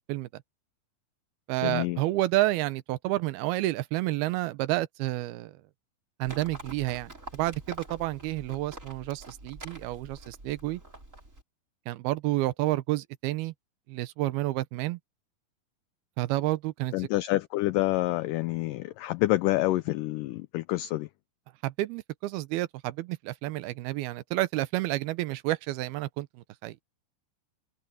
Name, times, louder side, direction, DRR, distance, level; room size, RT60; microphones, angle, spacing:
voice 1, 0.1-0.4 1.5-5.6 6.2-10.8 11.9-13.5 13.9-15.0 16.2-16.9 21.6-26.8, right 17 dB, 80° right, 2.7 m, -30 dB
voice 2, 1.6-2.0 16.9-21.1, left 18 dB, 85° left, 1.9 m, -27 dB
Livestock farm animals working animals, 6.2-11.4, right 2 dB, 20° right, 6.0 m, -46 dB
omnidirectional pair, 4.4 m